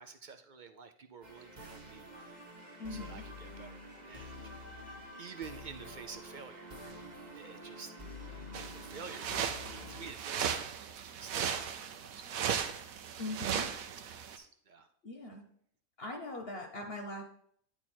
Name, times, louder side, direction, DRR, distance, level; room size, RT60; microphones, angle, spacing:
voice 1, 0.0-2.5 2.9-6.9 7.4-8.0 8.6-12.7 13.5-14.9, right 5 dB, 55° right, 7 dB, 0.5 m, -51 dB
sound 1, 1.2-10.1, left 1 dB, 35° right, 1.3 m, -48 dB
voice 2, 2.8-3.2 13.2-13.7 15.0-15.4 16.0-17.2, left 1 dB, 50° left, 1 dB, 1.1 m, -41 dB
sound 2, 8.5-14.4, right 8 dB, 85° right, 1.1 m, -37 dB
10.5 x 4.4 x 4.4 m, 0.65 s
omnidirectional pair, 1.4 m